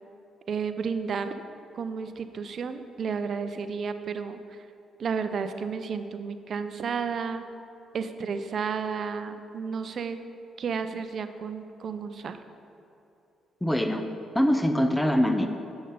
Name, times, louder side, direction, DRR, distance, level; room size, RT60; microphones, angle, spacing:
voice 1, 0.5-1.3 1.7-4.4 5.0-7.4 7.9-10.2 10.6-12.4, right 5 dB, 55° right, 10 dB, 0.5 m, -32 dB
voice 2, 13.6-14.0 14.3-15.5, equal, 5° left, 6 dB, 0.5 m, -23 dB
7.8 x 6.3 x 5.4 m, 2.8 s
cardioid pair, 90°, 0 cm